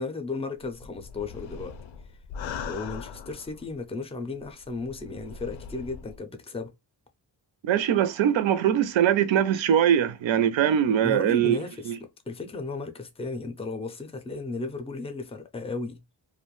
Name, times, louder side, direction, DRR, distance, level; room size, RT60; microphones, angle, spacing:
voice 1, 0.0-1.8 2.7-6.7 11.0-16.0, left 3 dB, 15° left, 0.4 m, -35 dB
sound 1, 0.6-3.8 4.4-6.2, left 6 dB, 90° left, 0.5 m, -40 dB
voice 2, 7.6-11.6 11.9-12.0, right 9 dB, 90° right, 0.5 m, -22 dB
2.4 x 2.2 x 3.0 m
wide cardioid pair, 130°, 45 cm